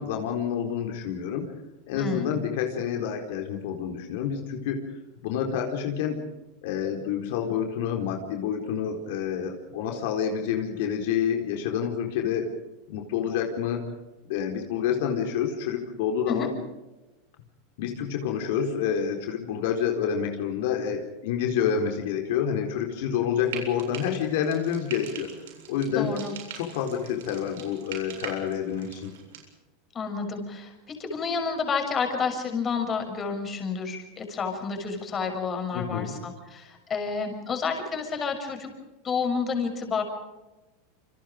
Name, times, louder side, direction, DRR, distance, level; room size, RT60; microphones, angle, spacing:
voice 1, 0.0-1.5 1.9-4.8 5.2-6.2 6.6-12.5 12.9-13.9 14.3-16.5 17.8-25.3 25.7-26.1 26.5-29.1 35.7-36.1, left 8 dB, 70° left, 3 dB, 4.3 m, -28 dB
voice 2, 1.9-2.3 16.3-16.5 25.9-26.3 29.9-38.7 39.0-40.0, left 5 dB, 25° left, 4 dB, 6.5 m, -30 dB
Frying (food), 23.4-29.5, right 7 dB, 80° right, 7.6 m, -42 dB
28.5 x 25.5 x 5.2 m, 1.1 s
supercardioid pair, 135°, 0 cm